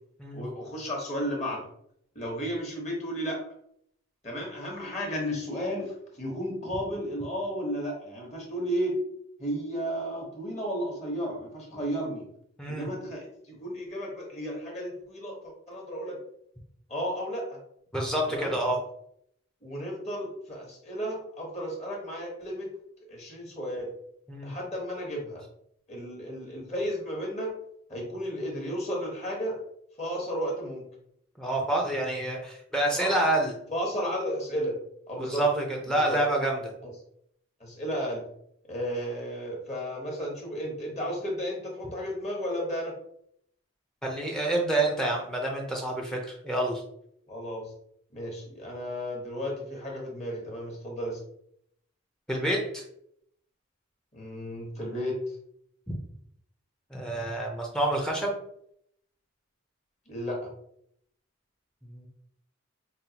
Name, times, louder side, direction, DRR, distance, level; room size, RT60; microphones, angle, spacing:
voice 1, 0.3-1.6 2.1-3.4 4.2-8.9 9.4-12.2 12.7-16.2 16.9-17.6 18.3-18.5 19.6-22.7 23.1-23.9 24.4-25.4 25.9-27.5 27.9-29.6 30.0-30.8 32.9-33.1 33.7-34.7 35.1-35.4 35.9-36.2 36.8-36.9 37.6-38.2 38.7-42.9 47.3-47.6 48.1-51.2 54.1-55.2 60.1-60.4, equal, 30° left, -1 dB, 1.1 m, -33 dB
voice 2, 17.9-18.8 24.3-24.5 31.4-33.5 35.2-36.6 44.0-46.8 52.3-52.8 55.9-56.0 56.9-58.4 61.8-62.1, right 1 dB, 5° left, 0 dB, 0.6 m, -28 dB
5.3 x 2.3 x 2.8 m, 0.71 s
head